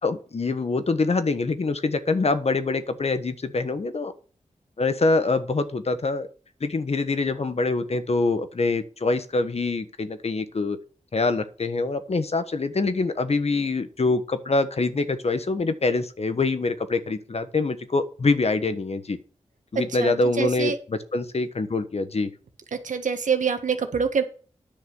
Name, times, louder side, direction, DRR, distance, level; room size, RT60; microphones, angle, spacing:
voice 1, 0.0-4.1 4.8-6.3 6.6-10.8 11.1-19.2 19.7-22.3, left 3 dB, 55° left, 10 dB, 1.3 m, -25 dB
voice 2, 20.0-20.8 22.7-24.2, right 6 dB, 80° right, 7 dB, 1.6 m, -25 dB
10.0 x 5.9 x 6.2 m, 0.40 s
cardioid pair, 60°, 13 cm